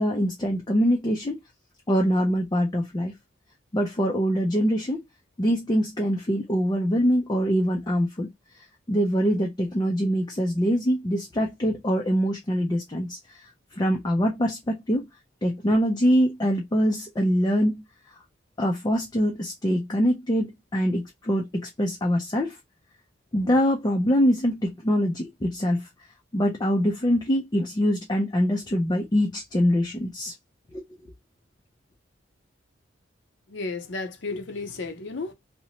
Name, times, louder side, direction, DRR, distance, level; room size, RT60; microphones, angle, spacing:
voice 1, 0.0-1.4 1.9-3.1 3.7-5.0 5.4-8.3 8.6-13.4 13.7-15.1 15.4-17.8 18.6-22.6 23.3-25.9 26.3-30.3 30.7-30.8, equal, 20° left, 0.4 m, -24 dB
voice 2, 33.5-35.3, left 3 dB, 65° left, 0.6 m, -33 dB
2.7 x 2.0 x 2.8 m
head